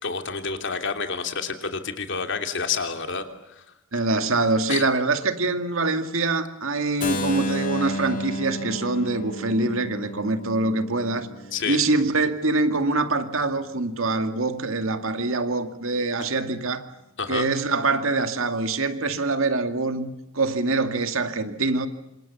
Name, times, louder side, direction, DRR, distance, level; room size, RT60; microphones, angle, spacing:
voice 1, 0.0-3.2 4.7-4.8 11.5-11.8 17.2-17.5, left 5 dB, 60° left, 3.1 m, -28 dB
voice 2, 3.9-11.3 11.7-16.9 17.3-21.9, right 3 dB, 75° right, 2.2 m, -24 dB
Keyboard (musical), 7.0-12.8, equal, 40° left, 2.8 m, -33 dB
28.5 x 26.5 x 7.1 m
head